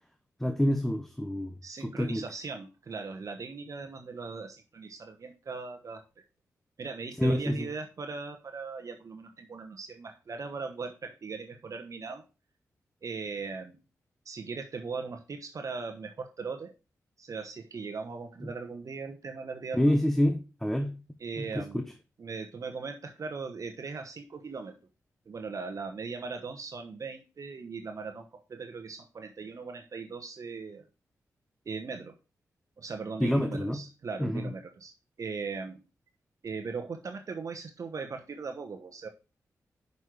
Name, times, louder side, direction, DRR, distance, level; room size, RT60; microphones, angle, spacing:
voice 1, 0.4-2.2 7.2-7.7 19.7-21.0 21.4-21.9 33.2-33.8 34.2-34.5, equal, 5° left, 0.9 m, -28 dB
voice 2, 1.6-6.0 6.8-12.2 13.0-13.8 14.2-16.7 17.2-19.9 21.2-21.8 22.2-24.8 25.3-30.8 31.6-32.2 32.8-35.8 36.4-39.1, right 4 dB, 60° right, 1.1 m, -39 dB
6.3 x 5.5 x 6.2 m
cardioid pair, 55°, 6 cm